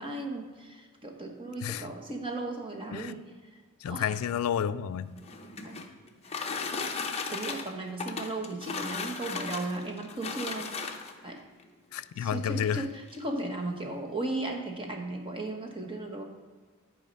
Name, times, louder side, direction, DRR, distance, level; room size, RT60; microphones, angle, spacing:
voice 1, 0.0-3.2 3.5-3.6 3.9-4.2 5.6-5.8 6.3-6.5 7.3-10.7 11.2-11.4 12.2-16.2, right 2 dB, 25° right, 2 dB, 1.1 m, -36 dB
voice 2, 3.8-5.1 11.9-12.9, left 8 dB, 70° left, 13 dB, 0.3 m, -30 dB
sound 1, 5.1-11.3 12.2-12.3 12.7-12.8 13.1-13.5, left 4 dB, 30° left, 0.7 m, -36 dB
10.5 x 4.7 x 5.3 m, 1.5 s
head